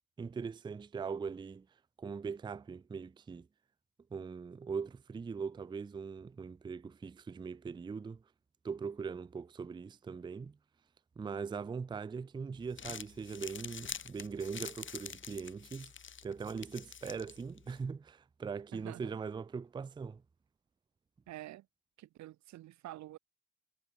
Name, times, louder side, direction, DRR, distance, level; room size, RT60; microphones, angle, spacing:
voice 1, 0.2-1.7 2.0-3.5 4.1-8.2 8.6-10.6 11.2-15.9 16.2-20.2, right 5 dB, 15° right, 0.4 m, -41 dB
Crumpling crinkling, 12.6-17.8, left 7 dB, 40° left, 1.9 m, -47 dB
voice 2, 18.7-19.1 21.3-21.7 22.0-23.2, right 15 dB, 65° right, 0.5 m, -48 dB
cardioid pair, 90°, 30 cm